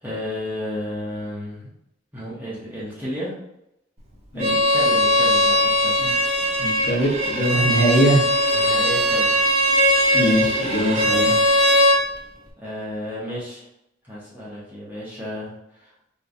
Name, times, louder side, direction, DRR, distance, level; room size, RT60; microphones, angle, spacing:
voice 1, 0.0-1.7 2.1-3.4 4.3-6.0 8.5-9.3 12.6-13.6 14.0-15.5 15.8-15.9, left 1 dB, 10° right, -8 dB, 1.0 m, -32 dB
Bowed string instrument, 4.4-12.0, equal, 35° right, 0.5 m, -19 dB
voice 2, 6.6-8.2 10.1-11.4, right 1 dB, 65° left, -5 dB, 1.3 m, -21 dB
3.1 x 3.0 x 2.6 m, 0.81 s
head